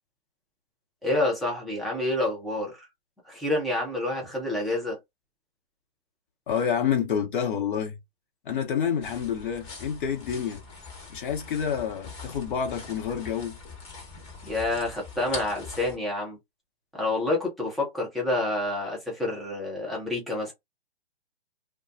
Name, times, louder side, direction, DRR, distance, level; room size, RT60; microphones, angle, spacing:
voice 1, 1.0-2.9 3.3-5.0 14.4-16.4 16.9-20.5, left 2 dB, ahead, 0.4 m, -28 dB
voice 2, 6.5-8.0 8.4-10.6 11.1-13.6, left 7 dB, 55° left, 1.0 m, -28 dB
sound 1, 9.0-16.0, left 4 dB, 25° left, 1.0 m, -42 dB
2.2 x 2.2 x 2.5 m
hypercardioid pair, 130°, 31 cm